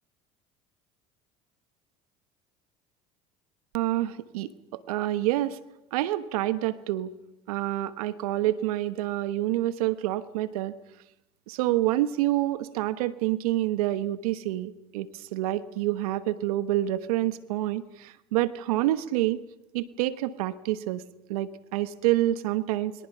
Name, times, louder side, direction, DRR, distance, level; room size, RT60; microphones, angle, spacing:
voice 1, 3.7-5.6 5.9-7.1 7.5-10.8 11.5-19.4 19.7-21.0 21.3-22.9, right 15 dB, 80° right, 13 dB, 1.2 m, -27 dB
28.5 x 23.0 x 5.7 m, 0.92 s
hypercardioid pair, 75°, 19 cm